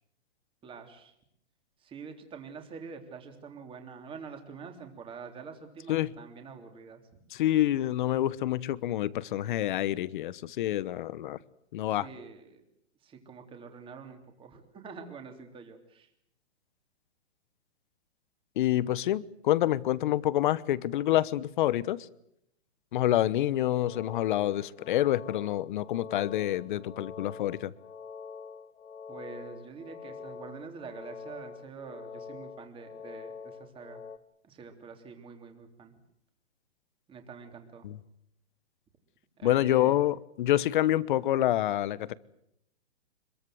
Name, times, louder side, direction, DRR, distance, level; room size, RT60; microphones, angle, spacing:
voice 1, 0.6-1.1 1.8-7.0 12.0-12.6 13.0-16.1 29.1-34.0 34.4-35.9 37.1-37.9 39.4-40.0, right 5 dB, 15° right, 5 dB, 3.3 m, -46 dB
voice 2, 7.3-11.4 11.7-12.1 18.6-22.1 22.9-27.7 37.8-38.0 39.4-42.1, left 13 dB, 45° left, 18 dB, 1.1 m, -27 dB
sound 1, 23.7-34.2, left 5 dB, 85° left, 1.6 m, -45 dB
26.0 x 22.0 x 7.8 m, 0.78 s
hypercardioid pair, 150°, 36 cm